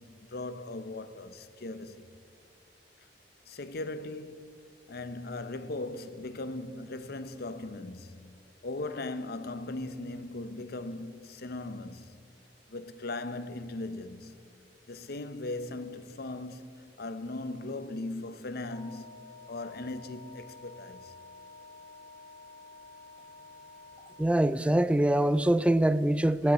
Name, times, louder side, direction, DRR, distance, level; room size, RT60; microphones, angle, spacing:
voice 1, 0.0-2.2 3.5-4.6 4.9-8.3 8.6-12.2 12.7-14.4 14.9-21.1, left 2 dB, 60° left, 0.8 m, -39 dB
Wind instrument woodwind instrument, 18.7-24.4, left 3 dB, 20° left, 1.1 m, -51 dB
voice 2, 24.2-26.5, right 1 dB, 5° right, 0.3 m, -24 dB
16.0 x 13.5 x 4.2 m
head